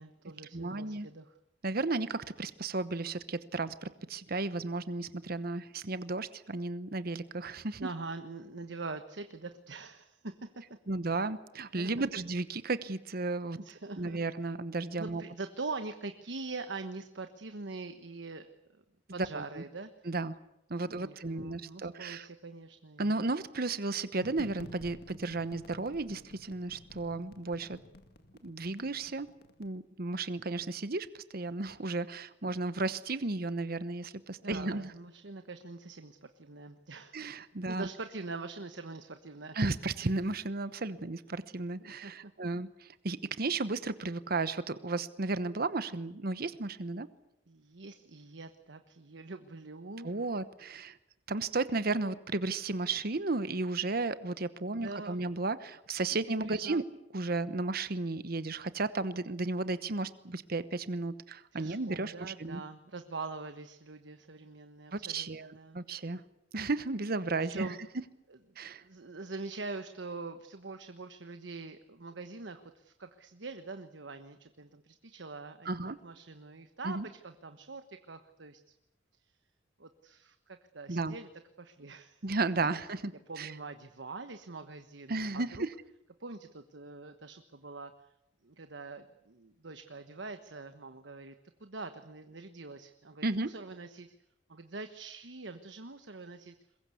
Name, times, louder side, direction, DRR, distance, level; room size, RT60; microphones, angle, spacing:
voice 1, 0.0-1.4 7.8-10.8 11.8-12.1 13.6-14.2 15.0-18.8 19.1-20.1 20.8-23.1 34.4-37.3 37.7-39.6 41.8-42.3 47.5-50.1 54.7-55.2 56.1-56.8 61.5-65.8 67.4-67.8 68.3-68.4 68.8-75.8 76.0-77.0 77.2-78.6 79.8-81.3 81.6-82.2 83.3-85.7 86.2-88.1 88.4-94.1 94.5-96.6, right 3 dB, 80° right, 8 dB, 1.2 m, -44 dB
voice 2, 0.5-1.1 1.6-7.8 10.9-13.6 14.0-15.2 19.1-19.4 20.0-20.3 20.7-22.3 23.0-27.8 28.4-29.3 29.6-34.9 37.1-37.9 39.5-47.1 50.0-51.0 51.3-56.8 57.1-62.6 64.9-66.2 66.5-67.7 68.6-68.8 75.6-76.0 76.8-77.1 80.9-81.2 82.2-83.1 83.4-83.5 85.1-85.7 93.2-93.5, right 3 dB, 55° right, 13 dB, 1.1 m, -34 dB
sound 1, 24.2-29.7, left 1 dB, 60° left, 2.0 m, -52 dB
22.5 x 22.0 x 8.4 m, 0.82 s
head